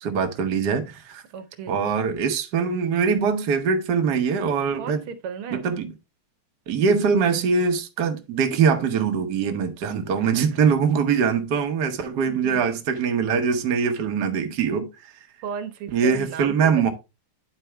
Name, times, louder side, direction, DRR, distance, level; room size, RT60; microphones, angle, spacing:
voice 1, 0.0-1.2 1.7-5.0 5.5-5.9 6.7-15.1 15.9-16.9, right 6 dB, 55° right, 1.5 m, -23 dB
voice 2, 1.3-1.8 4.8-5.6 10.2-10.6 12.3-12.7 15.4-16.9, right 7 dB, 85° right, 1.8 m, -35 dB
10.0 x 4.4 x 3.3 m
omnidirectional pair, 2.4 m